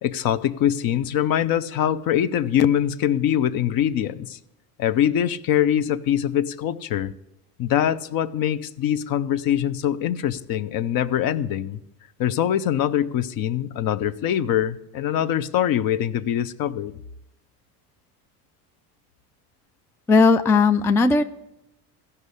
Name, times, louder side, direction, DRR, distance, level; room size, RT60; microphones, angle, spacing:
voice 1, 0.0-4.4 4.8-7.1 7.6-11.8 12.2-17.0, left 10 dB, 50° left, 13 dB, 0.8 m, -23 dB
voice 2, 20.1-21.2, left 4 dB, 5° left, 8 dB, 0.4 m, -17 dB
14.5 x 5.5 x 8.3 m, 0.87 s
supercardioid pair, 90°, 45 cm